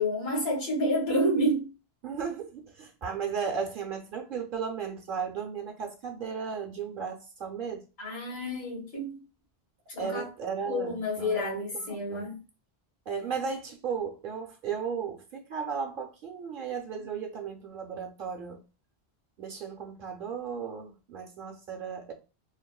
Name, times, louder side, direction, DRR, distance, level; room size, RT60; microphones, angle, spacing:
voice 1, 0.0-1.7 8.0-9.2 9.9-10.3 10.6-12.4, equal, 75° left, 1.3 m, -29 dB
voice 2, 2.0-7.8 10.0-12.3 13.1-18.6 19.4-22.1, right 6 dB, 60° right, 0.7 m, -35 dB
3.2 x 2.1 x 2.3 m
omnidirectional pair, 1.0 m